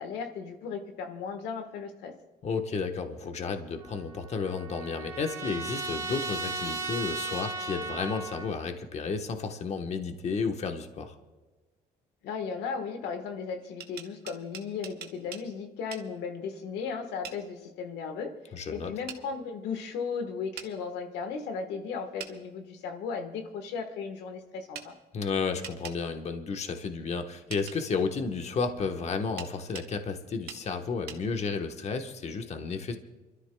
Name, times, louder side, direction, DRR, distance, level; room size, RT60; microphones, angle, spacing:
voice 1, 0.0-2.1 12.2-24.9, left 5 dB, 85° left, 6 dB, 1.4 m, -36 dB
voice 2, 2.4-11.2 18.5-18.9 25.1-33.0, left 5 dB, 40° left, 6 dB, 1.2 m, -32 dB
Trumpet, 3.8-8.5, right 3 dB, 20° right, 2.7 m, -36 dB
sound 1, 13.6-15.5 15.9-16.1 17.2-17.4 19.1-19.2 20.6-20.7 22.2-22.4 24.7-24.9 25.6-26.0 27.5-27.8 29.4-29.9 30.5-30.6 31.1-31.2, right 9 dB, 70° right, 1.3 m, -42 dB
29.5 x 13.0 x 2.3 m, 1.2 s
cardioid pair, 110°, 17 cm